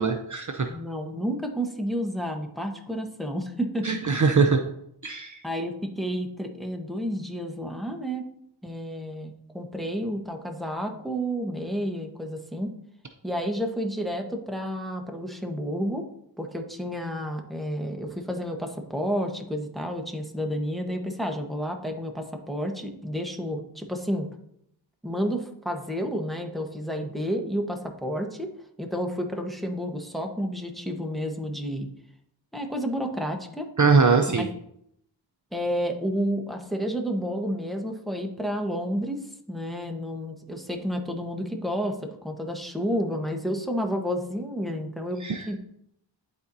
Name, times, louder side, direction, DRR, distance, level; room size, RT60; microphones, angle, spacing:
voice 1, 0.0-0.7 3.8-4.6 5.0-5.4 33.8-34.5 45.2-45.5, right 4 dB, 45° right, 5 dB, 0.6 m, -21 dB
voice 2, 0.7-4.0 5.4-8.2 8.6-12.7 13.2-16.0 16.4-24.3 25.0-28.5 28.8-31.9 32.5-33.7 34.3-34.5 35.5-39.2 39.5-45.6, equal, ahead, 3 dB, 1.1 m, -30 dB
11.0 x 4.2 x 2.7 m, 0.73 s
wide cardioid pair, 45°, 44 cm